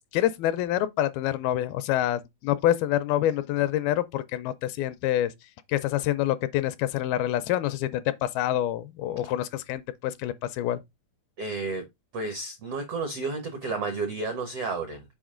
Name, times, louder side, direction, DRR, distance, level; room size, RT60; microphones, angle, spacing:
voice 1, 0.1-5.3 5.7-10.8, left 13 dB, 80° left, 2.3 m, -26 dB
voice 2, 11.4-11.8 12.1-15.0, right 3 dB, 70° right, 1.4 m, -31 dB
7.1 x 4.9 x 3.7 m
omnidirectional pair, 4.5 m